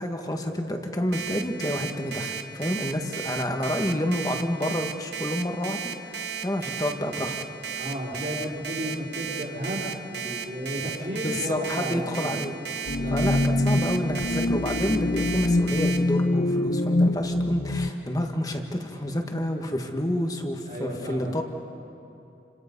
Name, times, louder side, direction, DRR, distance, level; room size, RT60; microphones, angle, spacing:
voice 1, 0.0-7.3 11.1-12.5 13.1-21.4, left 1 dB, 20° left, 4 dB, 1.7 m, -29 dB
Alarm, 1.1-16.0, right 7 dB, 70° right, 1.3 m, -34 dB
voice 2, 7.7-9.8 10.1-12.3 13.0-14.1 20.7-21.4, equal, 45° right, -3 dB, 4.7 m, -33 dB
sound 1, 12.9-17.9, left 2 dB, 55° left, 0.9 m, -24 dB
29.5 x 26.0 x 5.4 m, 2.8 s
head